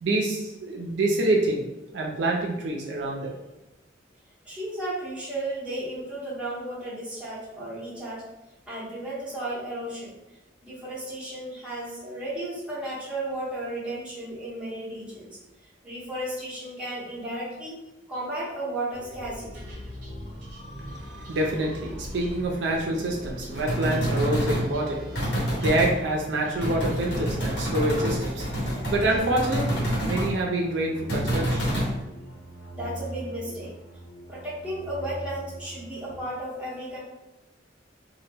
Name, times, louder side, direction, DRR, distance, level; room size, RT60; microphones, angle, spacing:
voice 1, 0.0-1.6 1.9-3.3 20.8-31.8, right 1 dB, 65° right, -1 dB, 0.4 m, -27 dB
voice 2, 4.4-8.3 8.7-10.2 10.6-15.3 15.6-17.8 18.1-19.7 32.7-33.7 34.3-37.0, right 1 dB, 5° right, -8 dB, 0.7 m, -34 dB
sound 1, 18.9-29.2, equal, 45° right, 0.8 m, -42 dB
sound 2, 19.2-36.2, equal, 85° left, 0.8 m, -43 dB
sound 3, 23.5-24.7 25.1-25.9 26.6-30.3 31.1-31.9, equal, 60° left, 1.0 m, -27 dB
2.1 x 2.0 x 3.2 m, 0.99 s
head